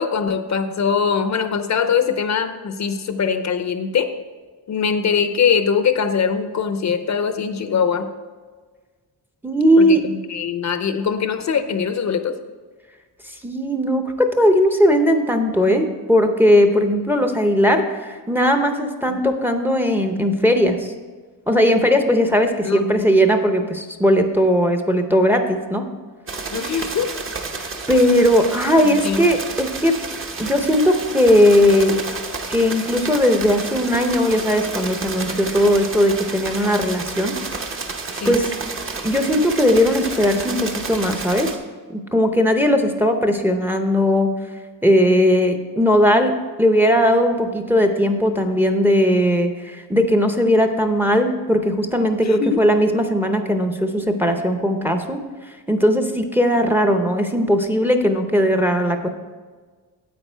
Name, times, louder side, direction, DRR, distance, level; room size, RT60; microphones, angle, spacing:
voice 1, 0.0-4.1 4.7-8.1 9.8-12.4 22.6-23.2 26.5-27.2 28.8-29.2 38.1-38.3 52.2-52.6, left 6 dB, 50° left, 9 dB, 0.6 m, -22 dB
voice 2, 9.4-10.0 13.4-20.9 21.5-25.8 27.9-29.9 30.4-32.0 32.5-37.3 38.2-38.5 39.0-41.5 41.9-44.3 44.8-46.3 46.6-55.2 55.7-59.1, equal, 5° right, 6 dB, 0.6 m, -18 dB
sound 1, 26.3-41.6, right 4 dB, 35° right, 0.9 m, -30 dB
9.2 x 8.4 x 4.5 m, 1.4 s
wide cardioid pair, 150°, 38 cm